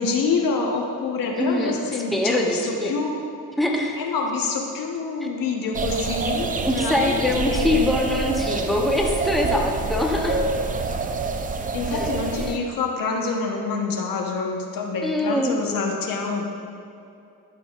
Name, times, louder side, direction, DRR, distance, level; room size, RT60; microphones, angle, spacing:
voice 1, 0.0-3.2 4.0-7.8 11.7-16.5, left 4 dB, 70° left, 1 dB, 1.2 m, -26 dB
voice 2, 1.3-1.7 2.1-2.9 3.6-4.0 6.6-10.4 11.9-12.1 15.0-15.5, left 1 dB, ahead, 0 dB, 0.9 m, -23 dB
sound 1, 5.7-12.6, right 3 dB, 25° right, 0.5 m, -27 dB
12.5 x 7.0 x 2.5 m, 2.6 s
cardioid pair, 110°, 35 cm